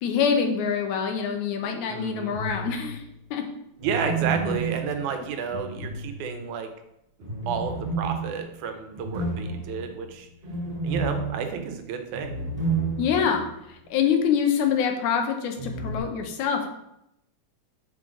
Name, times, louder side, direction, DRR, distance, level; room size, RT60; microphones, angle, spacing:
voice 1, 0.0-3.0 3.3-3.4 13.0-13.5 13.9-16.7, left 7 dB, 80° left, 5 dB, 2.3 m, -25 dB
voice 2, 1.9-2.4 3.8-6.7 7.5-10.3 10.8-12.4, right 6 dB, 85° right, 6 dB, 2.3 m, -31 dB
sound 1, 2.3-3.0 3.8-6.5 7.2-13.4 13.7-13.8 15.6-16.0, right 3 dB, 25° right, 0.9 m, -31 dB
5.4 x 5.0 x 6.1 m, 0.82 s
omnidirectional pair, 3.4 m